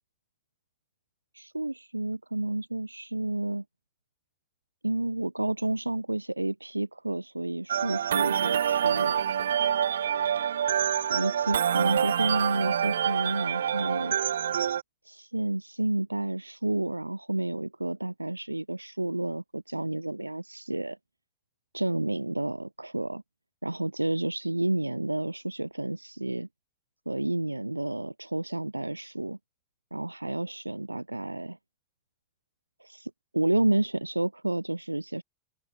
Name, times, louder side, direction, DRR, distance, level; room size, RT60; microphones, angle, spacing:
voice 1, 1.3-3.6 4.8-9.2 11.1-14.2 15.0-21.0 21.7-23.2 23.6-26.5 27.1-29.4 29.9-31.6 32.8-35.2, right 2 dB, 85° right, 3.7 m, -30 dB
sound 1, 7.7-14.8, right 9 dB, 65° right, 5.8 m, -26 dB
open air
figure-of-eight pair, 90°, 0 cm